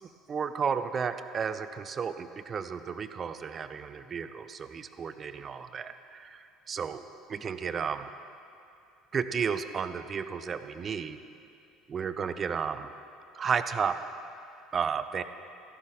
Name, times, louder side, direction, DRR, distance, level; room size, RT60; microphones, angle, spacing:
voice 1, 0.3-7.0 7.3-8.1 9.1-11.2 11.9-12.9 13.3-14.0 14.7-15.2, right 6 dB, 35° right, 11 dB, 0.5 m, -33 dB
14.5 x 11.5 x 3.7 m, 2.6 s
figure-of-eight pair, 65°, 0 cm